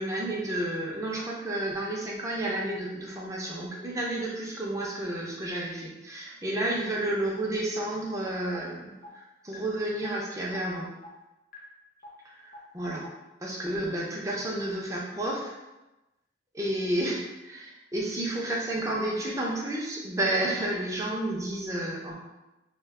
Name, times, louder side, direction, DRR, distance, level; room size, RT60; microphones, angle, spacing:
voice 1, 0.0-10.9 12.2-13.0 13.4-15.5 16.5-22.1, right 1 dB, 15° right, -3 dB, 0.5 m, -31 dB
sound 1, 8.5-8.6 9.0-9.1 9.5-9.6 10.0-10.1 10.5-10.6 11.0-11.1 11.5-11.6 12.0-12.1 12.5-12.6 13.0-13.1, left 2 dB, 45° left, 0.6 m, -44 dB
2.3 x 2.1 x 3.5 m, 1.0 s
head